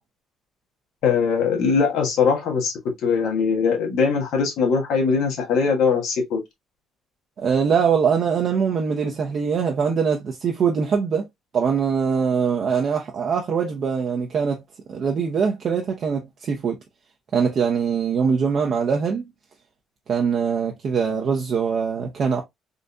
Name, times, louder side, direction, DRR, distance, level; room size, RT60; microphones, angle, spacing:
voice 1, 1.0-2.7 3.0-6.4, left 5 dB, 80° left, 1.2 m, -21 dB
voice 2, 7.4-11.3 11.5-14.6 14.9-16.8 17.3-19.3 20.1-22.4, right 6 dB, 50° right, 0.6 m, -22 dB
3.8 x 2.6 x 2.2 m
cardioid pair, 95°, 0 cm